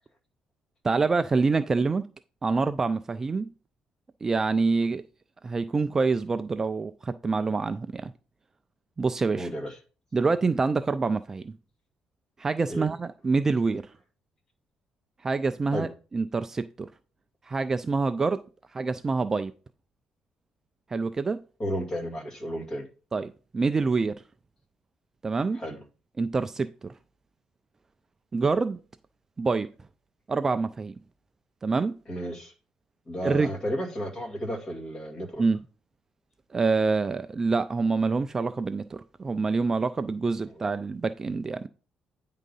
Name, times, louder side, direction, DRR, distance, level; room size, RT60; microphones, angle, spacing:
voice 1, 0.8-2.1 2.4-3.5 4.2-5.0 5.4-8.1 9.0-9.5 10.1-11.6 12.4-13.9 15.2-16.9 17.4-18.4 18.7-19.5 20.9-21.4 23.1-24.2 25.2-25.6 26.2-26.9 28.3-28.8 29.4-29.7 30.3-30.9 31.6-32.0 33.2-33.5 35.4-35.6 36.5-41.7, right 4 dB, 20° right, 0.3 m, -26 dB
voice 2, 9.4-9.8 12.7-12.9 15.7-15.9 21.6-22.9 25.5-25.8 32.1-32.5 33.1-35.4 40.6-40.7, equal, 30° left, 2.0 m, -33 dB
9.1 x 3.7 x 5.4 m
cardioid pair, 150°, 2 cm